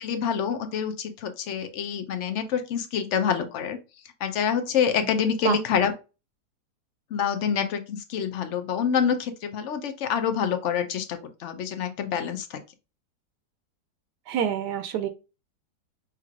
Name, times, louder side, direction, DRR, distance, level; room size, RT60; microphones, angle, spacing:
voice 1, 0.0-3.8 4.2-5.9 7.1-12.6, left 7 dB, 60° left, 0.8 m, -27 dB
voice 2, 14.3-15.1, right 8 dB, 85° right, 1.2 m, -26 dB
5.7 x 3.0 x 2.4 m
omnidirectional pair, 1.7 m